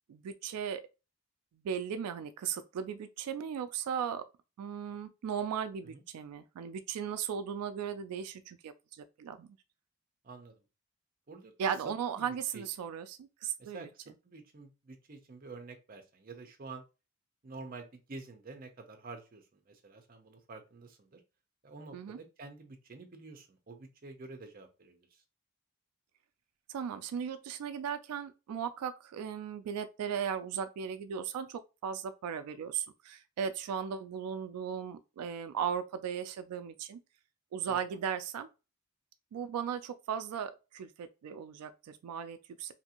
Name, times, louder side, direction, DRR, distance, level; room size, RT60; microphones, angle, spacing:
voice 1, 0.1-0.8 1.6-4.2 4.6-9.6 11.6-13.9 21.9-22.2 26.7-37.0 37.5-38.5 39.3-42.7, right 7 dB, 90° right, 0.3 m, -37 dB
voice 2, 12.1-12.9 13.6-16.8 17.4-21.2 21.6-25.2 37.7-38.0, right 3 dB, 40° right, 0.5 m, -49 dB
2.7 x 2.6 x 2.8 m
head